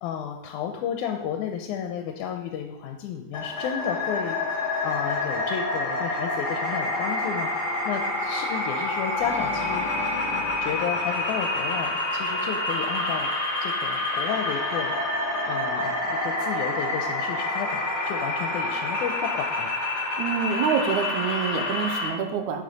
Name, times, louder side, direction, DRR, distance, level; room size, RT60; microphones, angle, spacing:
voice 1, 0.0-7.5 7.9-9.9 10.6-13.3 13.6-15.2 15.4-19.8, left 8 dB, 85° left, 4 dB, 2.0 m, -32 dB
sound 1, 3.3-22.1, left 2 dB, 35° left, 2.8 m, -28 dB
Organ, 9.2-12.3, right 1 dB, 35° right, 0.5 m, -38 dB
voice 2, 20.2-22.6, right 7 dB, 80° right, 6 dB, 2.1 m, -26 dB
8.4 x 5.7 x 3.9 m, 0.95 s
omnidirectional pair, 3.5 m